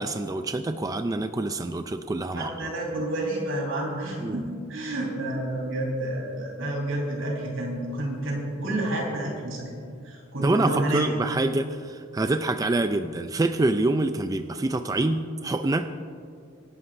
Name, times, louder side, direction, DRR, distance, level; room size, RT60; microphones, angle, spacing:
voice 1, 0.0-2.7 4.2-4.4 10.4-15.9, right 2 dB, 20° right, 8 dB, 0.4 m, -26 dB
voice 2, 2.3-9.8 10.0-11.1, right 1 dB, 85° right, -2 dB, 4.1 m, -29 dB
26.5 x 11.5 x 2.6 m, 2.3 s
head